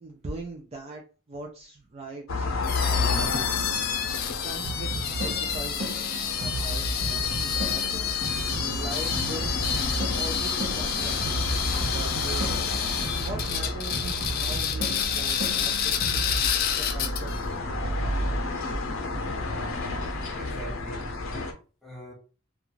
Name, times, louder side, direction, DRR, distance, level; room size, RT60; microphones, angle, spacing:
voice 1, 0.0-2.5 2.8-3.5 4.4-9.6 10.1-11.4 11.9-12.5 13.2-16.2 16.7-17.7, right 2 dB, 30° right, 0.4 m, -41 dB
sound 1, 2.3-21.5, left 2 dB, 85° left, 0.7 m, -32 dB
sound 2, 2.6-17.4, left 8 dB, 50° left, 0.4 m, -29 dB
sound 3, 4.6-16.5, right 2 dB, 75° right, 0.8 m, -34 dB
voice 2, 19.7-21.1 21.8-22.1, right 1 dB, ahead, 0.9 m, -42 dB
2.5 x 2.3 x 2.9 m
head